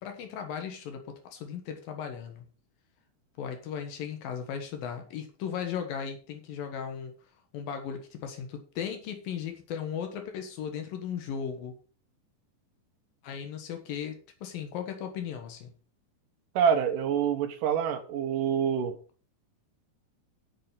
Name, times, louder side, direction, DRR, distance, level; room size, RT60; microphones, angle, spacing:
voice 1, 0.0-2.4 3.4-7.1 7.5-11.7 13.2-15.7, left 8 dB, 75° left, 6 dB, 3.0 m, -36 dB
voice 2, 16.6-19.0, right 8 dB, 70° right, 8 dB, 2.5 m, -26 dB
8.2 x 7.8 x 5.7 m, 0.38 s
omnidirectional pair, 4.3 m